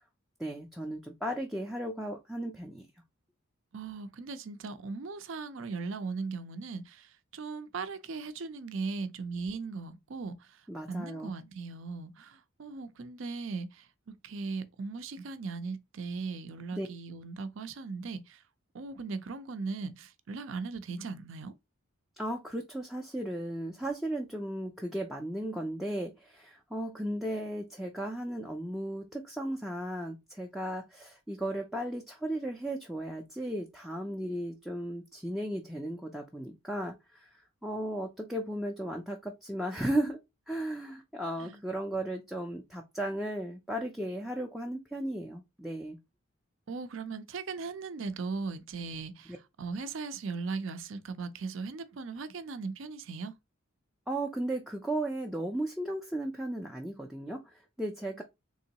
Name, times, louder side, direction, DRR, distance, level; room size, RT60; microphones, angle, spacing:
voice 1, 0.4-2.8 10.7-11.3 16.7-16.9 22.2-37.3 37.6-40.2 40.5-46.0 54.1-58.2, right 1 dB, ahead, 0.4 m, -35 dB
voice 2, 3.7-7.1 7.3-10.3 10.9-18.4 18.7-21.5 41.4-41.6 46.7-53.3, right 4 dB, 60° right, 0.5 m, -38 dB
3.6 x 3.0 x 2.8 m
head